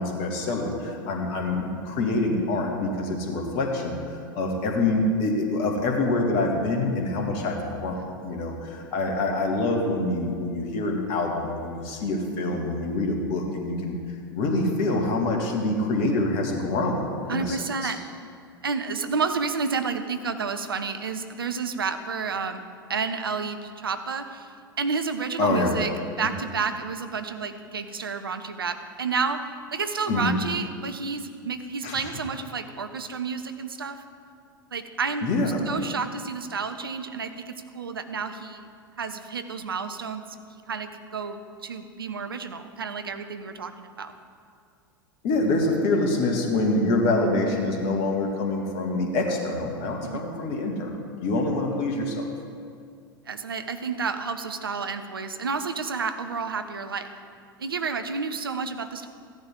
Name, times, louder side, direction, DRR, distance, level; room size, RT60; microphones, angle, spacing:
voice 1, 0.0-4.0 4.4-14.0 14.3-17.9 25.4-25.7 30.1-30.3 31.8-32.1 35.2-35.6 45.2-52.3, left 2 dB, 50° left, 1 dB, 2.2 m, -26 dB
voice 2, 17.3-18.0 18.6-22.6 22.9-24.5 24.8-25.9 26.2-34.0 34.7-35.3 35.7-38.7 39.0-40.2 40.7-44.1 50.0-50.2 53.3-57.1 57.6-59.1, right 5 dB, 80° right, 9 dB, 0.8 m, -30 dB
15.0 x 10.5 x 3.7 m, 2.2 s
figure-of-eight pair, 85°, 12 cm